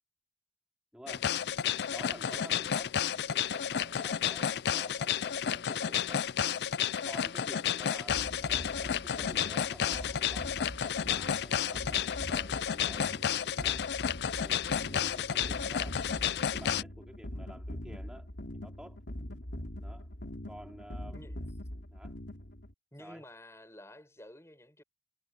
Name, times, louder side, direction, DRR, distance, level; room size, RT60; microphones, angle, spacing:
voice 1, 0.9-1.3 1.9-3.0 3.3-6.3 7.0-13.9 14.4-16.0 16.5-18.3 18.5-19.0 19.8-20.1 20.5-21.4 21.9-22.2 23.0-23.2, equal, 5° right, 4.1 m, -50 dB
sound 1, 1.1-16.8, left 8 dB, 70° left, 0.4 m, -31 dB
sound 2, 8.1-22.7, left 1 dB, 90° left, 3.0 m, -43 dB
voice 2, 21.1-21.4 22.9-24.8, left 1 dB, 15° left, 7.2 m, -51 dB
head